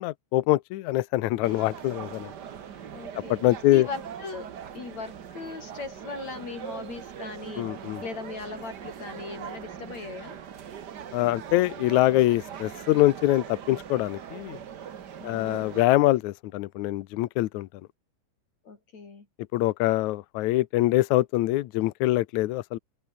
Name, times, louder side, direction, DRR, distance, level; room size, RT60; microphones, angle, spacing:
voice 1, 0.0-2.3 3.3-3.9 7.6-8.0 11.1-14.6 15.2-17.7 19.5-22.8, left 16 dB, 70° left, 1.9 m, -24 dB
sound 1, 1.4-15.8, right 8 dB, 75° right, 0.9 m, -41 dB
voice 2, 2.9-7.7 8.0-10.4 15.2-15.6 18.6-19.3, left 4 dB, 50° left, 5.4 m, -39 dB
omnidirectional pair, 4.0 m